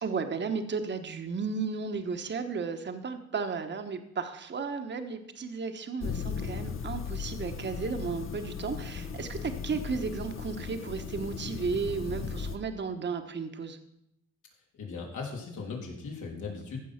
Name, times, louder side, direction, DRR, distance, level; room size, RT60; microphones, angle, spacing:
voice 1, 0.0-13.8, right 5 dB, 35° right, 7 dB, 1.2 m, -34 dB
sound 1, 6.0-12.6, left 6 dB, 45° left, 1.0 m, -37 dB
voice 2, 14.8-16.8, left 4 dB, 80° left, -1 dB, 3.3 m, -38 dB
15.0 x 6.3 x 5.9 m, 0.79 s
cardioid pair, 90°, 30 cm